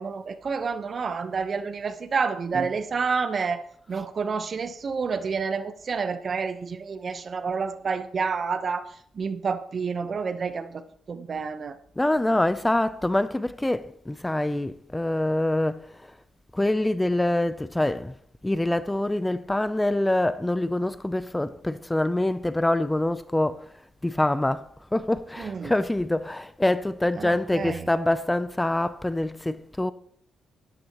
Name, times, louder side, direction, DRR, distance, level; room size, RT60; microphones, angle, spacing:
voice 1, 0.0-3.6 3.9-11.8 25.4-25.7 27.2-27.9, right 5 dB, 50° right, 0.9 m, -29 dB
voice 2, 12.0-15.9 16.5-18.1 18.4-23.6 24.0-29.9, left 1 dB, 10° left, 0.4 m, -25 dB
13.0 x 11.5 x 3.0 m
cardioid pair, 75°, 0 cm